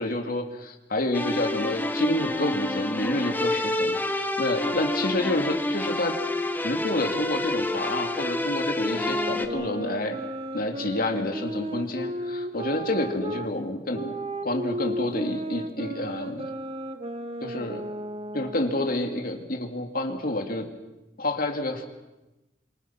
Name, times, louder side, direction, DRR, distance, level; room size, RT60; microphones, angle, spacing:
voice 1, 0.0-6.2 6.6-10.2 10.5-14.1 14.4-16.5 17.4-17.8 18.3-20.7 21.2-21.8, left 1 dB, 55° left, 4 dB, 2.8 m, -29 dB
sound 1, 1.1-9.5, left 1 dB, 10° left, 1.4 m, -28 dB
sound 2, 8.8-13.5 13.9-18.9, right 1 dB, 35° right, 1.4 m, -34 dB
27.0 x 24.5 x 6.0 m, 1.0 s
head